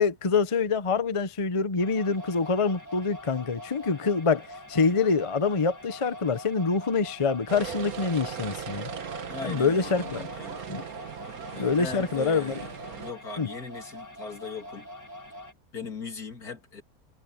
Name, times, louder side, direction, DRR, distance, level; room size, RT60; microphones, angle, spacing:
voice 1, 0.0-8.9 9.4-10.2 10.7-10.8 11.5-12.6 13.4-13.5, left 5 dB, 25° left, 0.7 m, -26 dB
sound 1, 1.8-15.5, left 1 dB, 10° left, 1.6 m, -44 dB
sound 2, 7.5-13.1, right 7 dB, 70° right, 1.7 m, -38 dB
voice 2, 9.3-10.8 11.5-14.9 15.7-16.8, left 5 dB, 75° left, 3.5 m, -39 dB
omnidirectional pair, 1.6 m